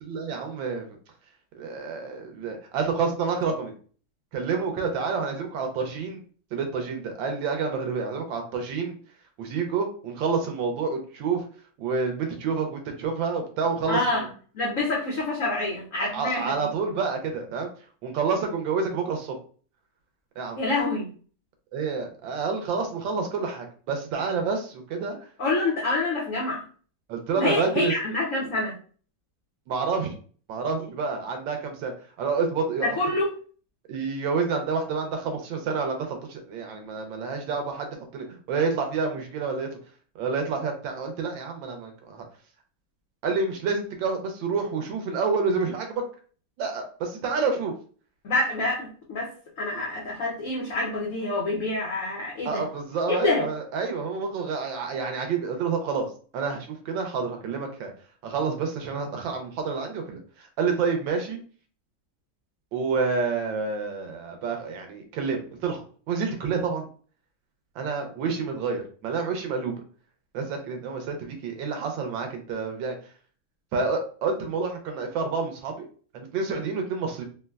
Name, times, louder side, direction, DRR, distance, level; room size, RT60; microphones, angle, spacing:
voice 1, 0.0-0.9 1.5-3.7 4.3-6.2 6.5-8.9 9.4-11.4 11.8-14.3 16.1-17.7 18.0-19.4 20.4-20.6 21.7-25.1 27.1-27.9 29.7-30.2 30.5-31.9 32.2-33.2 33.9-39.7 40.2-42.2 43.2-46.0 46.6-47.7 52.4-56.1 56.3-57.9 58.2-61.4 62.7-65.8 66.1-66.9 67.8-69.7 70.3-72.9 73.7-75.9 76.1-77.2, right 4 dB, 75° right, 4 dB, 1.3 m, -28 dB
voice 2, 13.9-14.3 14.5-16.6 20.6-21.1 25.4-26.6 27.4-28.7 32.8-33.3 48.2-52.6 53.1-53.5, left 2 dB, 80° left, -3 dB, 0.7 m, -27 dB
3.8 x 2.1 x 2.2 m, 0.41 s
omnidirectional pair, 2.2 m